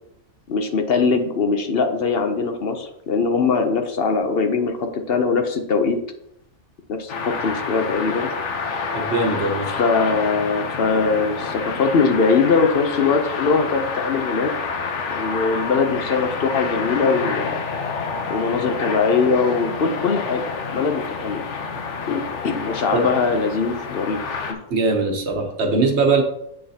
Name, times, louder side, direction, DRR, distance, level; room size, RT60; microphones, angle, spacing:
voice 1, 0.5-6.0 6.9-8.3 9.6-14.5 15.1-17.6 18.3-20.4 20.7-21.4 22.1-24.2 24.5-24.6, left 4 dB, 60° left, 6 dB, 0.8 m, -21 dB
sound 1, 7.1-24.5, left 5 dB, 75° left, 1.2 m, -28 dB
voice 2, 8.9-9.7 22.9-23.1 24.7-26.2, right 3 dB, 65° right, 3 dB, 1.3 m, -20 dB
7.9 x 6.4 x 2.8 m, 0.77 s
omnidirectional pair, 1.2 m